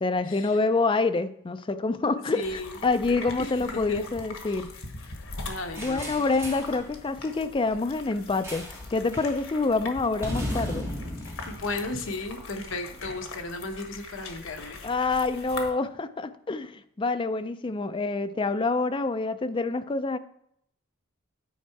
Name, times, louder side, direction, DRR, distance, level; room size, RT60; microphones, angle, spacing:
voice 1, 0.0-4.7 5.8-10.9 14.8-20.2, left 3 dB, 25° left, 10 dB, 0.4 m, -27 dB
voice 2, 2.3-2.8 3.4-4.0 4.5-4.6 5.4-6.1 11.5-14.8, left 2 dB, 65° left, 5 dB, 0.9 m, -35 dB
sound 1, 2.4-15.7, left 3 dB, 85° left, 1.2 m, -42 dB
sound 2, 5.8-6.8 8.4-8.9 9.1-9.4 10.2-12.6, equal, 15° right, 1.5 m, -35 dB
9.3 x 4.6 x 4.6 m, 0.72 s
head